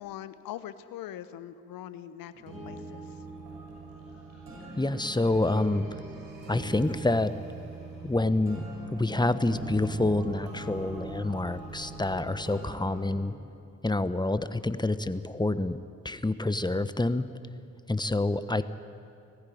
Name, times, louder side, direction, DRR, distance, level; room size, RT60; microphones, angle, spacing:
voice 1, 0.0-3.2, left 11 dB, 75° left, 14 dB, 1.0 m, -42 dB
sound 1, 2.3-13.1, right 2 dB, 75° right, 6.7 m, -41 dB
voice 2, 4.8-5.8 6.5-7.3 8.0-8.6 8.9-13.3 13.8-15.8 16.0-17.3 17.9-18.6, left 2 dB, 10° left, 12 dB, 1.2 m, -27 dB
20.0 x 15.0 x 9.5 m, 2.6 s
hypercardioid pair, 40°, 35 cm